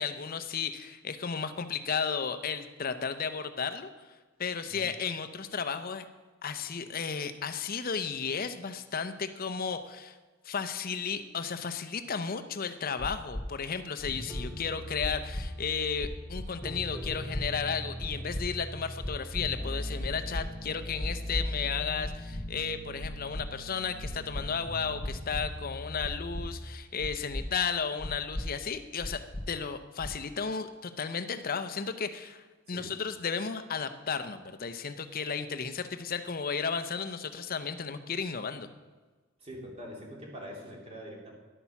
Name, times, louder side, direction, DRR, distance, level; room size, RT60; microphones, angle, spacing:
voice 1, 0.0-3.9 4.4-6.0 6.4-10.1 10.4-38.7, left 6 dB, 45° left, 10 dB, 0.6 m, -34 dB
sound 1, 13.0-13.4 14.0-14.4 15.0-15.4 16.0-16.5 17.0-17.4 18.0-18.4 19.0-19.4 20.0-20.4 21.0-21.4 22.0-22.4 23.0-23.4 24.0-24.4 25.0-25.4 26.0-26.4 27.0-27.4 28.0-28.4 29.0-29.4 30.0-30.3, left 1 dB, 20° left, 1.0 m, -36 dB
sound 2, 14.1-26.6, equal, 10° right, 1.1 m, -41 dB
voice 2, 39.4-41.3, equal, 30° right, -2 dB, 2.8 m, -44 dB
11.0 x 8.4 x 5.8 m, 1.3 s
head